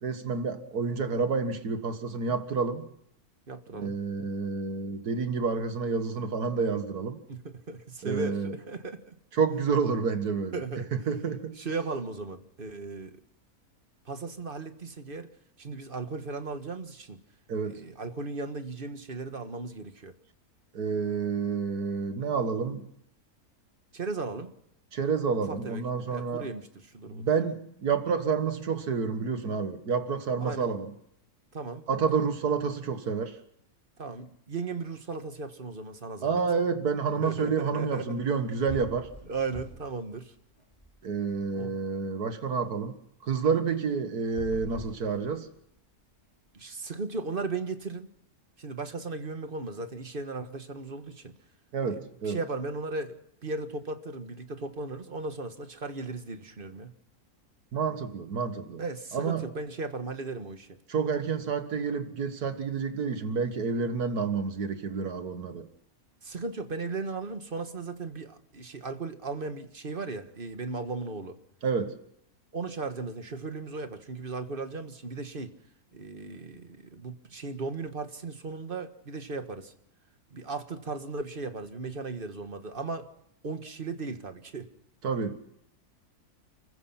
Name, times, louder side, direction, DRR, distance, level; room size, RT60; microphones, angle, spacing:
voice 1, 0.0-2.9 3.7-7.2 8.0-8.5 9.3-10.6 10.9-11.6 17.5-17.8 20.7-22.9 24.9-26.5 27.1-30.9 31.9-33.4 36.2-39.1 41.0-45.5 51.7-52.4 57.7-58.8 59.1-59.5 60.9-65.7 71.6-72.0 85.0-85.4, right 5 dB, 85° right, 2.2 m, -29 dB
voice 2, 3.5-3.9 7.3-9.2 10.5-11.1 11.6-13.2 14.0-15.3 15.6-17.2 17.6-20.1 23.9-24.5 25.5-27.3 30.4-30.7 31.5-31.9 34.0-36.4 37.1-38.2 39.3-40.3 41.5-41.8 46.5-48.1 48.6-51.3 51.8-52.0 52.2-56.9 58.8-60.8 66.2-71.4 72.5-75.5 75.9-79.7 80.3-83.1 83.4-84.7, right 3 dB, 35° right, 1.6 m, -36 dB
sound 1, 38.2-38.4 38.7-40.0 40.3-41.4 44.2-45.7, right 1 dB, 20° left, 5.9 m, -44 dB
30.0 x 15.0 x 5.8 m
omnidirectional pair, 1.6 m